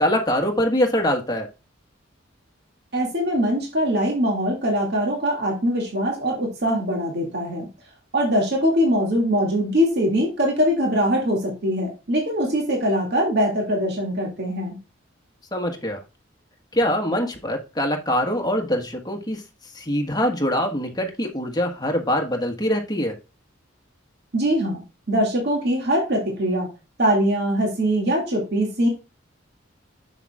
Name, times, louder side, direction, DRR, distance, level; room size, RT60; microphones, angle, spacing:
voice 1, 0.0-1.5 15.5-16.0 16.7-19.4 19.7-23.1, equal, 20° left, 3 dB, 1.3 m, -23 dB
voice 2, 2.9-7.7 8.1-14.8 24.3-24.8 25.1-26.7 27.0-28.9, equal, 55° right, 0 dB, 2.1 m, -22 dB
7.2 x 7.0 x 2.3 m, 0.29 s
head